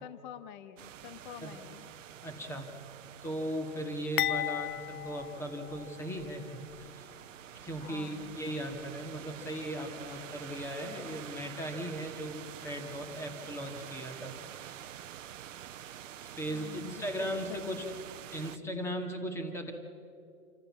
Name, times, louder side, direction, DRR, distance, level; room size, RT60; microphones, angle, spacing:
voice 1, 0.0-1.9 7.8-8.4 16.5-17.8, left 11 dB, 35° left, 13 dB, 0.9 m, -47 dB
sound 1, 0.8-18.6, right 10 dB, 60° right, 1.0 m, -47 dB
voice 2, 2.2-2.7 3.2-7.1 7.6-14.3 14.6-14.8 16.2-17.9 18.3-19.7, equal, 5° left, 4 dB, 1.9 m, -38 dB
sound 2, 4.2-6.3 6.7-6.9 7.7-7.9, left 12 dB, 80° left, 0.6 m, -35 dB
28.0 x 14.5 x 7.4 m, 2.6 s
hypercardioid pair, 140°, 43 cm